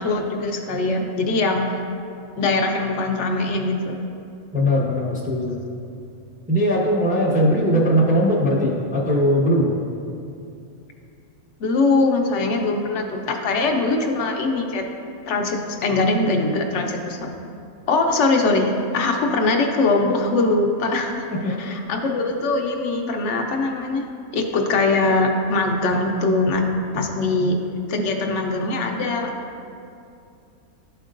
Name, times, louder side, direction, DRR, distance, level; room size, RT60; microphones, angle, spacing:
voice 1, 0.0-1.8 2.4-4.0 11.6-14.9 15.3-17.3 17.9-24.0 24.3-26.7 26.9-27.6 27.9-29.3, left 3 dB, 60° left, 2 dB, 1.0 m, -22 dB
voice 2, 4.5-5.6 6.5-9.7 21.3-21.5, equal, 5° right, -4 dB, 0.8 m, -20 dB
12.5 x 4.5 x 2.5 m, 2.5 s
omnidirectional pair, 1.5 m